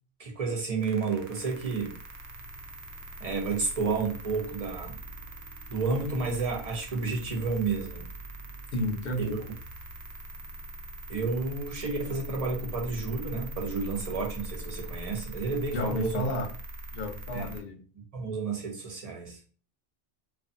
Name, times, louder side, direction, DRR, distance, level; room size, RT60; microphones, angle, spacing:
voice 1, 0.2-2.0 3.2-5.0 5.7-8.1 9.2-9.4 11.1-16.2 17.3-17.5 18.1-19.4, right 4 dB, 40° right, 0.7 m, -31 dB
sound 1, 0.8-17.6, right 1 dB, 80° right, 0.8 m, -42 dB
voice 2, 8.7-9.4 15.7-16.5 16.9-17.8, left 1 dB, 70° left, 0.8 m, -31 dB
2.5 x 2.3 x 2.5 m
omnidirectional pair, 1.0 m